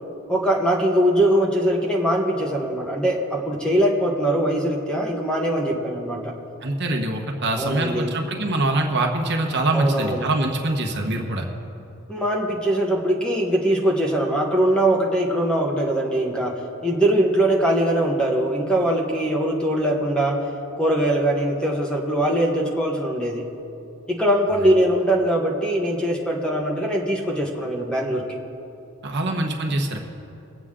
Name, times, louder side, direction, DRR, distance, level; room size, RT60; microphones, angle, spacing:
voice 1, 0.3-6.3 7.6-8.1 9.7-10.3 12.1-20.4 20.8-23.5 24.1-28.3, right 1 dB, 5° left, -1 dB, 1.3 m, -22 dB
voice 2, 6.6-11.5 29.0-30.0, right 2 dB, 55° right, 2 dB, 1.2 m, -24 dB
22.5 x 8.1 x 3.7 m, 2.8 s
head